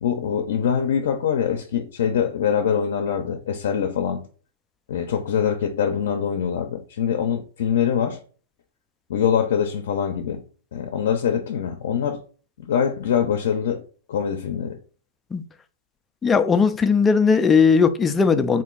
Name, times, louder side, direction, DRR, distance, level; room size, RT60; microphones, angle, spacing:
voice 1, 0.0-4.3 4.9-8.2 9.1-10.4 10.7-12.2 12.7-13.8 14.1-14.8, left 8 dB, 70° left, 0.5 m, -23 dB
voice 2, 16.2-18.6, left 5 dB, 15° left, 0.3 m, -18 dB
3.0 x 2.6 x 3.7 m
hypercardioid pair, 140°, 0 cm